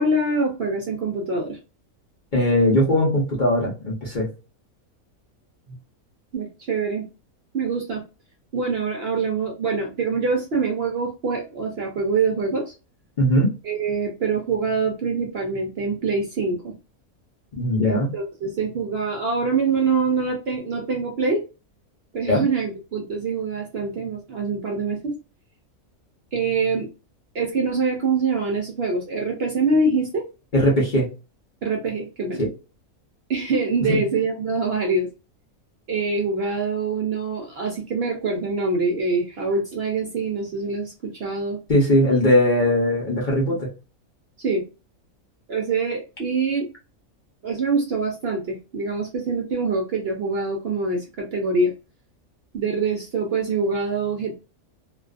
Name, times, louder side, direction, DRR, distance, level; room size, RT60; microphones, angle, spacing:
voice 1, 0.0-1.6 6.3-7.1 7.5-8.0 8.5-12.7 13.6-16.7 17.8-21.4 22.1-25.1 26.3-26.9 27.3-30.2 31.6-32.4 33.3-35.1 35.9-41.6 44.4-44.6 45.5-46.7 47.4-51.7 52.5-54.4, right 4 dB, 60° right, 1 dB, 0.7 m, -24 dB
voice 2, 2.3-4.3 13.2-13.5 17.6-18.1 22.3-22.4 30.5-31.1 32.4-32.5 33.9-34.0 41.7-43.7, left 1 dB, 45° left, -4 dB, 0.7 m, -19 dB
2.5 x 2.4 x 2.3 m, 0.31 s
omnidirectional pair, 1.5 m